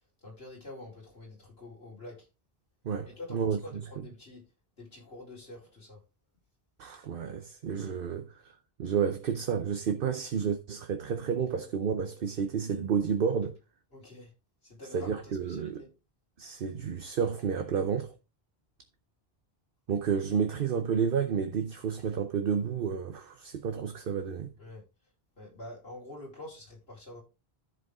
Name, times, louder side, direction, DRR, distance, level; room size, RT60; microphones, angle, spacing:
voice 1, 0.2-2.3 3.2-4.4 4.8-6.0 13.9-14.3 14.6-15.9 24.6-24.8 25.4-27.2, left 2 dB, 75° left, 4.6 m, -46 dB
voice 2, 2.8-3.6 6.8-13.6 14.9-15.8 16.4-18.1 19.9-24.5, right 7 dB, 60° right, 0.9 m, -31 dB
13.5 x 5.1 x 3.6 m
omnidirectional pair, 1.0 m